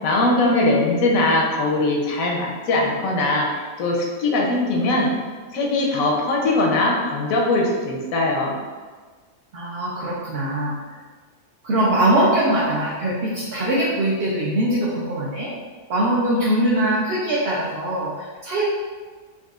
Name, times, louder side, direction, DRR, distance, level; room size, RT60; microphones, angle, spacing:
voice 1, 0.0-3.5 3.8-5.1 5.5-8.6, left 2 dB, 85° left, -1 dB, 1.1 m, -20 dB
voice 2, 9.5-10.8 11.6-15.5 15.9-18.7, right 1 dB, 60° right, -6 dB, 0.7 m, -22 dB
4.0 x 2.4 x 2.4 m, 1.5 s
omnidirectional pair, 1.4 m